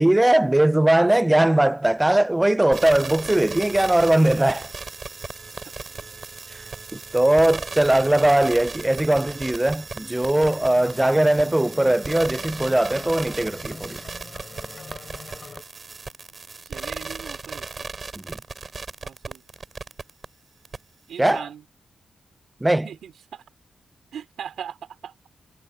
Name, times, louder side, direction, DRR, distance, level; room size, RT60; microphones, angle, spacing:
voice 1, 0.0-4.7 6.9-14.0 18.2-18.4 21.2-21.4 22.6-22.9, right 1 dB, 15° right, 0.4 m, -20 dB
sound 1, 2.7-20.3 20.6-20.8, right 4 dB, 45° right, 7.0 m, -36 dB
sound 2, 10.3-15.6, left 4 dB, 50° left, 6.9 m, -43 dB
voice 2, 16.6-17.9 19.0-19.4 21.1-21.6 22.8-23.4 24.1-25.1, right 8 dB, 85° right, 3.1 m, -39 dB
cardioid pair, 60°, 0 cm